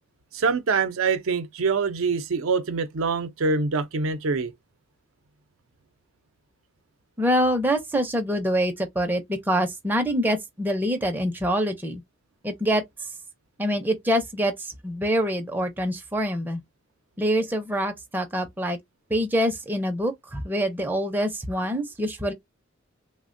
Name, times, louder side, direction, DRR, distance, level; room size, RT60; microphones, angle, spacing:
voice 1, 0.3-4.5, right 4 dB, 80° right, 0.5 m, -25 dB
voice 2, 7.2-12.0 12.4-12.8 13.6-16.6 17.2-18.8 19.1-22.3, equal, 10° right, 0.5 m, -25 dB
3.3 x 2.1 x 2.5 m
head